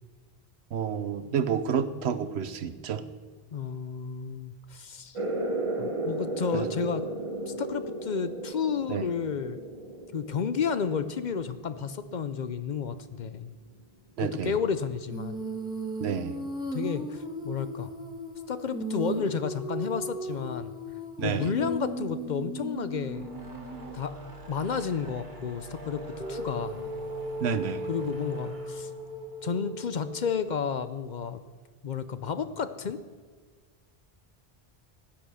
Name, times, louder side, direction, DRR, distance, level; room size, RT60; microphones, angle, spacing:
voice 1, 0.7-3.0 6.5-6.7 8.9-9.1 14.2-14.6 16.0-16.4 21.2-21.5 27.4-27.9, right 7 dB, 90° right, 12 dB, 1.0 m, -29 dB
voice 2, 3.5-5.2 5.8-7.0 7.5-9.6 10.1-13.5 14.2-15.4 16.7-17.9 18.5-20.7 21.2-23.3 23.9-24.2 24.5-26.8 27.9-28.9 29.4-31.4 31.8-33.0, left 6 dB, 55° left, 11 dB, 0.6 m, -31 dB
sound 1, 5.1-12.3, right 2 dB, 30° right, 1.1 m, -35 dB
Female singing, 15.1-24.0 26.2-30.4, right 1 dB, 5° right, 1.3 m, -37 dB
sound 2, 22.9-30.3, equal, 50° right, 1.6 m, -44 dB
15.5 x 8.8 x 6.3 m, 1.5 s
omnidirectional pair, 1.1 m